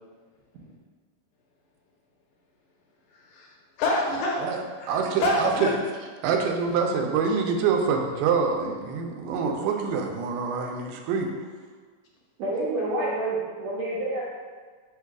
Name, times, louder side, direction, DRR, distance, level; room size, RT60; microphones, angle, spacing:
voice 1, 3.1-4.5 4.8-5.7, left 1 dB, 75° left, -2 dB, 2.0 m, -27 dB
voice 2, 4.9-5.7 6.2-11.3, right 5 dB, 90° right, 3 dB, 2.2 m, -25 dB
voice 3, 12.4-14.2, right 2 dB, 75° right, -6 dB, 1.7 m, -28 dB
5.0 x 2.3 x 4.6 m, 1.5 s
omnidirectional pair, 3.7 m